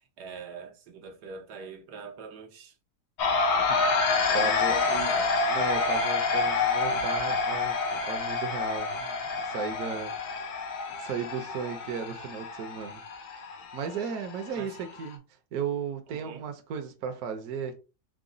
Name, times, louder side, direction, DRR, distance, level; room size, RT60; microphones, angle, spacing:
voice 1, 0.0-2.7 4.3-5.4 14.5-14.8 16.1-16.4, right 5 dB, 90° right, 1.4 m, -42 dB
sound 1, 3.2-15.1, left 4 dB, 85° left, 1.3 m, -28 dB
voice 2, 3.5-4.8 5.4-7.8 8.1-10.4 11.0-13.0 13.5-15.2 15.5-17.8, right 6 dB, 70° right, 1.1 m, -35 dB
4.9 x 2.1 x 3.7 m
omnidirectional pair, 1.7 m